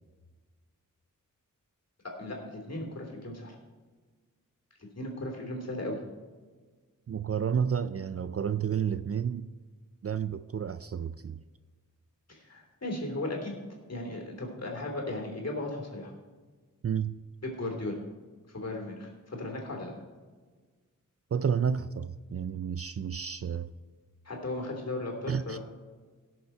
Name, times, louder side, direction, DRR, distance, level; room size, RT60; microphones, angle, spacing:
voice 1, 2.0-3.6 4.9-6.0 12.3-13.6 13.9-16.1 17.4-18.0 18.5-19.9 24.2-25.6, left 2 dB, 50° left, 3.2 m, -36 dB
voice 2, 7.1-9.5 10.0-11.4 16.8-17.2 21.3-23.7 25.3-25.6, right 7 dB, 45° right, 0.4 m, -31 dB
17.0 x 6.8 x 4.5 m
wide cardioid pair, 70°, 33 cm